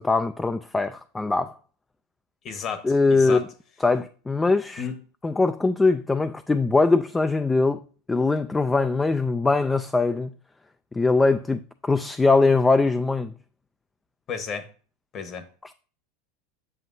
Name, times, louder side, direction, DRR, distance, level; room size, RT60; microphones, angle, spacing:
voice 1, 0.0-1.5 2.8-3.5 3.8-4.9 5.2-7.8 8.1-10.3 10.9-13.3 15.6-15.7, left 3 dB, 15° left, 0.4 m, -22 dB
voice 2, 2.4-3.5 4.8-4.9 14.3-14.7 15.1-15.4, left 6 dB, 40° left, 1.2 m, -32 dB
7.7 x 7.0 x 2.7 m
supercardioid pair, 110°, 0 cm